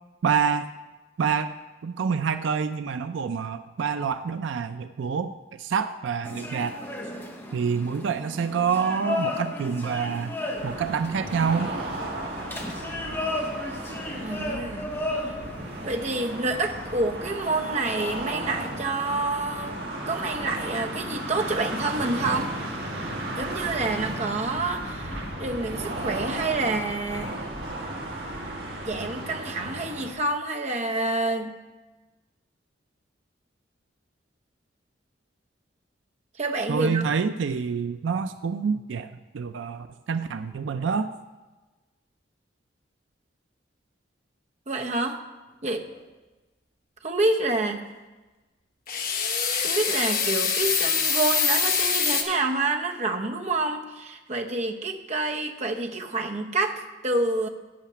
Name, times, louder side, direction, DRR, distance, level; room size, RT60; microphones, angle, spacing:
voice 1, 0.2-0.7 1.2-1.5 1.8-5.3 5.6-6.8 7.5-10.3 10.6-11.7 36.7-41.1, right 6 dB, 80° right, 10 dB, 0.4 m, -27 dB
sound 1, 6.2-25.3, left 1 dB, 10° left, 1.0 m, -36 dB
sound 2, 10.6-30.1, right 1 dB, 60° right, 2.0 m, -35 dB
voice 2, 14.2-14.9 15.8-19.8 20.1-22.5 23.4-27.4 28.8-31.6 36.4-37.0 44.7-45.2 45.6-45.9 47.0-47.8 49.6-57.5, right 2 dB, 40° right, 3 dB, 0.8 m, -28 dB
sound 3, 48.9-52.2, left 6 dB, 50° left, 1.0 m, -24 dB
8.7 x 5.8 x 7.2 m, 1.2 s
head